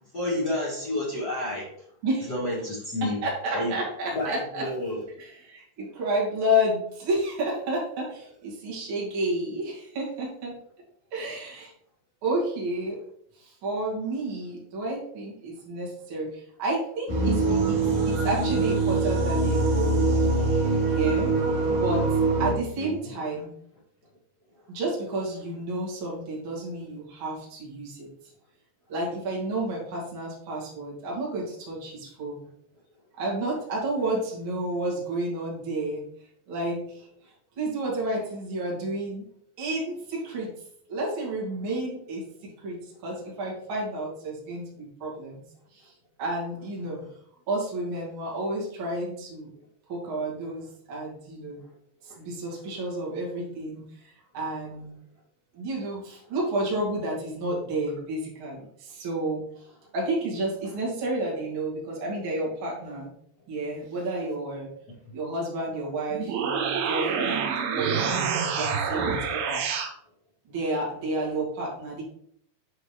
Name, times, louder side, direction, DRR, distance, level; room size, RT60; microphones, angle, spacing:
voice 1, 0.1-1.7 2.3-3.2 3.5-3.7 4.1-5.0 22.8-23.1, left 1 dB, 65° left, -7 dB, 0.9 m, -30 dB
voice 2, 3.0-4.7 5.2-10.6 11.1-11.7 12.2-13.0 13.4-20.1 20.8-21.3 21.8-23.6 24.7-28.1 28.9-32.4 33.2-36.0 36.5-37.1 37.6-39.2 39.6-40.5 40.9-45.4 45.7-45.9 46.2-47.0 47.5-49.5 49.9-51.6 52.2-54.9 55.5-59.4 59.9-63.1 63.5-64.7 65.1-69.6 70.5-72.0, right 1 dB, 35° right, -4 dB, 2.4 m, -31 dB
sound 1, 17.1-22.5, right 3 dB, 55° right, 1.2 m, -23 dB
sound 2, 66.1-69.9, right 6 dB, 75° right, 2.5 m, -27 dB
8.5 x 5.3 x 3.2 m, 0.68 s
omnidirectional pair, 5.0 m